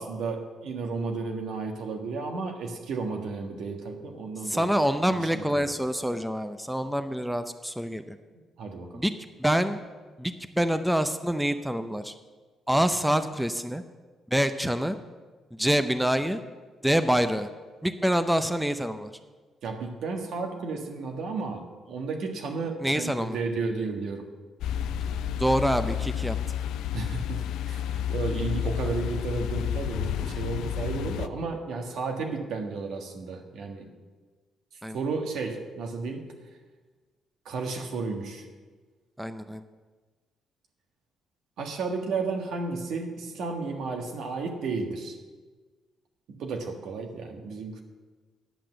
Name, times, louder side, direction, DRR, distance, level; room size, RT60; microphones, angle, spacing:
voice 1, 0.0-4.7 5.1-5.7 8.6-9.0 19.6-24.2 26.9-33.9 34.9-36.3 37.4-38.4 41.6-45.1 46.4-47.8, right 4 dB, 75° right, 3 dB, 1.5 m, -33 dB
voice 2, 4.4-8.2 8.9-9.1 9.4-9.8 10.2-12.1 12.7-13.8 14.3-15.0 15.6-16.4 16.8-17.5 17.8-19.1 22.8-23.4 25.4-26.4 34.8-35.0 39.2-39.6, equal, 5° right, 10 dB, 0.5 m, -26 dB
sound 1, 24.6-31.3, left 9 dB, 85° left, 0.4 m, -30 dB
10.0 x 6.0 x 7.7 m, 1.4 s
cardioid pair, 90°, 0 cm